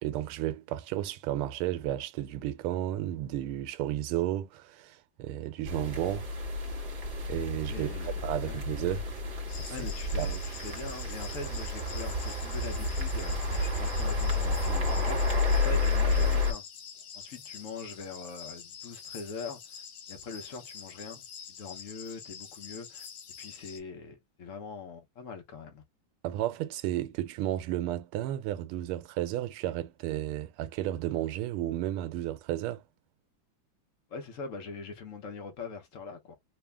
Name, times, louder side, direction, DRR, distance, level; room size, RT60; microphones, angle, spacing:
voice 1, 0.0-6.3 7.3-7.9 8.2-9.1 9.6-9.7 10.2-10.3 26.2-32.8, right 13 dB, 85° right, 1.5 m, -33 dB
sound 1, 5.6-16.5, left 2 dB, 40° right, 1.5 m, -30 dB
voice 2, 7.7-8.2 8.4-8.6 9.7-16.7 17.1-23.1 23.4-25.8 34.1-36.3, left 4 dB, 50° left, 1.0 m, -43 dB
sound 2, 9.5-23.8, left 7 dB, 80° left, 1.7 m, -46 dB
3.4 x 2.6 x 3.4 m
omnidirectional pair, 2.4 m